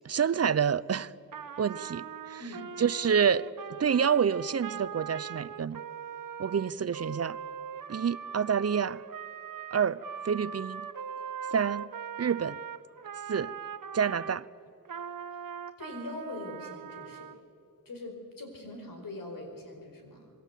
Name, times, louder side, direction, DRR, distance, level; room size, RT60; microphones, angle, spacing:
voice 1, 0.0-1.1 1.6-2.4 2.8-3.5 3.8-5.8 6.4-7.4 7.9-9.0 9.7-10.9 11.5-11.9 12.2-12.6 13.3-13.5 13.9-14.4, right 7 dB, 50° right, 18 dB, 0.6 m, -28 dB
Trumpet, 1.3-14.4 14.9-17.4, right 7 dB, 80° right, 1.0 m, -41 dB
voice 2, 15.8-17.3 17.8-20.3, left 2 dB, 85° left, 4 dB, 5.0 m, -42 dB
27.0 x 21.0 x 8.3 m, 2.5 s
wide cardioid pair, 85°, 33 cm